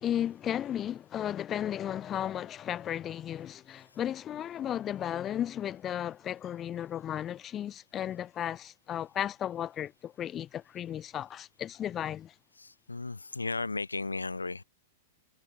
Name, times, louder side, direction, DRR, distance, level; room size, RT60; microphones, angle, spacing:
voice 1, 0.0-12.3, left 10 dB, 25° left, 0.5 m, -34 dB
voice 2, 12.5-14.6, left 3 dB, 80° left, 0.8 m, -35 dB
figure-of-eight pair, 100°, 0 cm